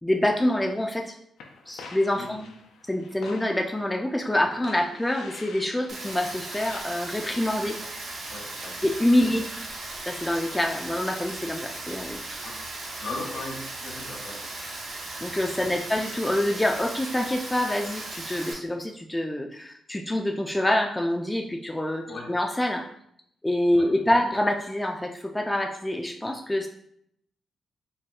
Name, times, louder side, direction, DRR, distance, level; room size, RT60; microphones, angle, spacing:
voice 1, 0.0-1.1 1.7-2.4 2.9-7.8 8.8-9.5 10.1-12.4 15.2-22.8 23.4-26.7, left 1 dB, 10° left, 2 dB, 0.3 m, -26 dB
sound 1, 1.4-6.8, left 4 dB, 85° left, 0.4 m, -46 dB
voice 2, 2.1-2.4 8.3-8.8 9.2-9.3 12.4-12.6 13.0-14.4 15.6-15.9 22.1-22.3 23.7-23.9, left 2 dB, 70° left, -1 dB, 1.1 m, -38 dB
Rain, 5.9-18.5, right 2 dB, 65° right, 0.7 m, -37 dB
4.2 x 2.2 x 2.3 m, 0.71 s
cardioid pair, 65°, 0 cm